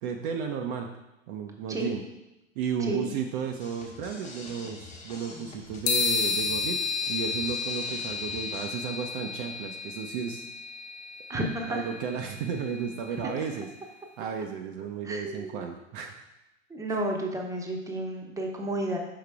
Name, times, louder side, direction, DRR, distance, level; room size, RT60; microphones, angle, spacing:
voice 1, 0.0-0.9 1.3-2.0 2.6-10.4 11.7-13.7 14.2-16.1 16.9-17.0, right 7 dB, 45° right, 3 dB, 0.6 m, -33 dB
sound 1, 3.6-8.7, left 3 dB, 20° left, 1.3 m, -46 dB
sound 2, 5.9-13.5, left 4 dB, 55° left, 1.0 m, -32 dB
voice 2, 11.3-11.8 15.0-15.7 16.7-19.0, right 1 dB, 10° right, 1 dB, 0.9 m, -31 dB
5.5 x 5.2 x 3.4 m, 0.96 s
figure-of-eight pair, 90°, 38 cm